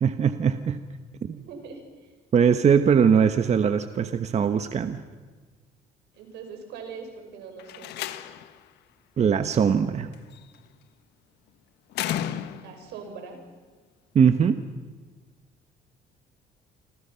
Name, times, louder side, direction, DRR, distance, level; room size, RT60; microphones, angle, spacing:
voice 1, 0.0-0.8 1.2-1.4 2.3-5.0 9.2-10.1 14.1-14.6, right 7 dB, 40° right, 9 dB, 1.2 m, -21 dB
voice 2, 1.3-2.1 6.1-7.9 12.6-13.4, right 5 dB, 85° right, 4 dB, 6.0 m, -41 dB
Slam, 7.6-8.6 10.1-10.6 11.9-12.9, left 11 dB, 80° left, 1.5 m, -33 dB
28.5 x 25.5 x 5.8 m, 1.4 s
cardioid pair, 110°, 17 cm